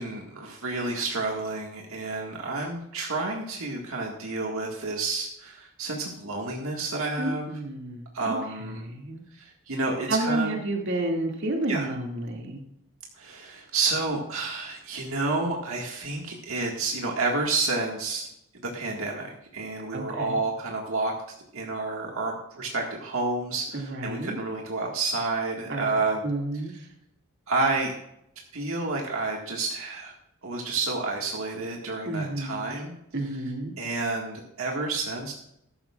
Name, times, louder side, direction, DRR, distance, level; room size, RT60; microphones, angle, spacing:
voice 1, 0.0-7.4 8.1-8.8 9.3-10.5 11.7-11.9 13.2-18.3 18.7-21.1 21.5-26.3 27.5-28.0 28.5-30.1 30.4-32.9 33.8-35.3, right 3 dB, 75° right, 0 dB, 1.9 m, -30 dB
voice 2, 7.2-8.4 8.8-9.2 10.1-12.6 19.9-20.4 23.7-24.4 25.7-25.8 26.2-26.7 32.0-32.7 33.1-33.7, right 1 dB, 55° right, 1 dB, 2.3 m, -30 dB
14.5 x 12.5 x 2.4 m, 0.77 s
head